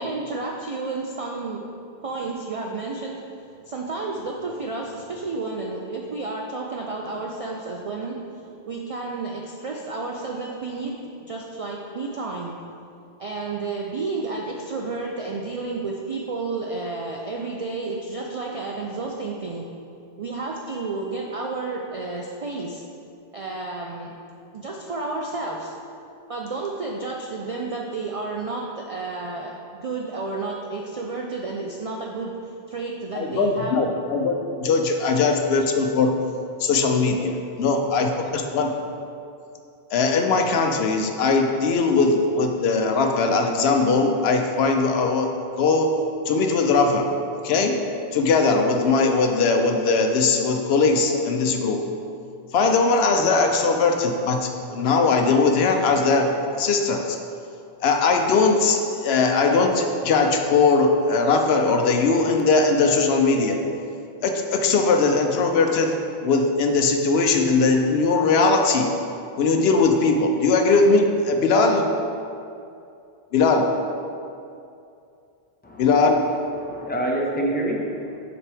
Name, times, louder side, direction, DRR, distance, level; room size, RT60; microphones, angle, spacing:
voice 1, 0.0-1.6 2.0-3.4 3.7-8.2 8.7-10.9 11.2-12.5 13.2-19.7 20.2-22.8 23.3-25.7 26.3-33.8, right 3 dB, 55° right, -1 dB, 0.4 m, -31 dB
voice 2, 33.1-36.1 36.6-38.7 39.9-45.3 45.6-45.9 46.3-47.1 47.4-47.8 48.1-51.8 52.5-56.3 56.6-57.2 57.8-63.6 64.2-65.9 66.2-68.9 69.4-71.9 73.3-73.7 75.8-76.2, left 4 dB, 75° left, 4 dB, 0.8 m, -20 dB
voice 3, 75.6-76.0 76.5-78.2, right 1 dB, 10° left, -2 dB, 0.5 m, -27 dB
7.2 x 4.1 x 3.4 m, 2.6 s
omnidirectional pair, 1.1 m